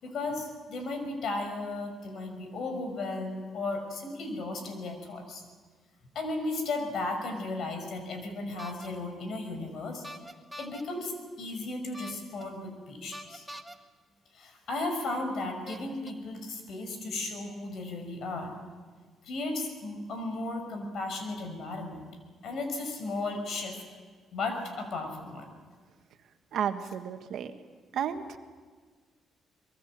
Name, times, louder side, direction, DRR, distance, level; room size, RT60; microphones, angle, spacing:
voice 1, 0.0-5.4 6.1-10.0 10.6-13.5 14.3-18.5 19.2-22.0 22.4-23.8 24.3-25.5, left 2 dB, 65° left, 6 dB, 5.9 m, -35 dB
sound 1, 8.6-8.9 10.0-10.8 11.9-12.4 13.1-13.8 14.8-14.9 15.7-16.1, equal, 5° right, 1.7 m, -43 dB
voice 2, 26.5-27.5 27.9-28.4, right 8 dB, 70° right, 7 dB, 1.6 m, -32 dB
24.0 x 22.0 x 7.6 m, 1.5 s
cardioid pair, 90°, 0 cm